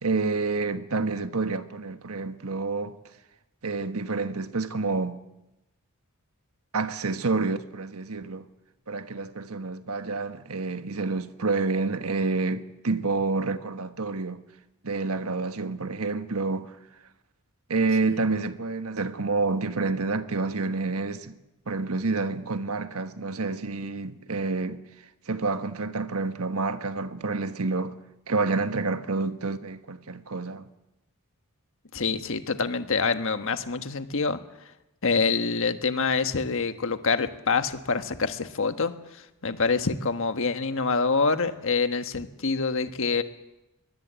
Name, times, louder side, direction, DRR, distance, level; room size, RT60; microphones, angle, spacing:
voice 1, 0.0-3.0 3.6-5.2 6.7-8.5 8.9-14.4 14.8-16.8 17.7-21.4 21.7-24.8 25.3-28.0 28.3-30.7, right 3 dB, 80° right, 1.3 m, -28 dB
voice 2, 31.9-34.4 35.0-38.9 39.4-43.2, left 4 dB, 65° left, 1.4 m, -26 dB
23.0 x 19.0 x 8.2 m
head